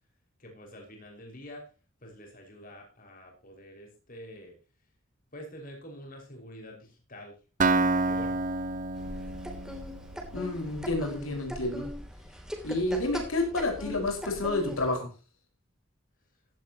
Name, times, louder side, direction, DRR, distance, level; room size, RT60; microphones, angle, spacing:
voice 1, 0.4-1.7 2.0-4.6 5.3-8.4, equal, 40° left, 1 dB, 5.5 m, -47 dB
Acoustic guitar, 7.6-11.4, right 3 dB, 40° right, 0.9 m, -29 dB
sound 1, 9.0-14.9, equal, 5° right, 2.9 m, -40 dB
voice 2, 10.3-11.9 12.6-15.1, left 2 dB, 85° left, 3 dB, 5.1 m, -29 dB
15.5 x 13.0 x 2.9 m, 0.32 s
head